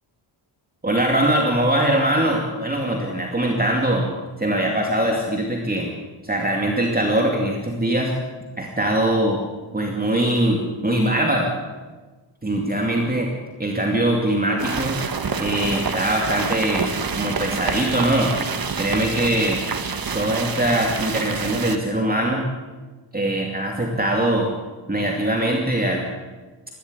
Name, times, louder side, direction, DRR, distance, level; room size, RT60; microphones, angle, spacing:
voice 1, 0.8-4.1 4.4-5.9 6.2-8.1 8.6-9.4 9.7-11.5 12.4-13.3 13.6-15.0 15.4-18.3 18.8-19.6 20.1-22.5 23.1-24.5 24.9-26.1, right 1 dB, 20° right, 0 dB, 2.6 m, -22 dB
sound 1, 14.6-21.8, right 5 dB, 45° right, 1.6 m, -27 dB
20.5 x 15.5 x 9.8 m, 1.3 s
wide cardioid pair, 155°, 48 cm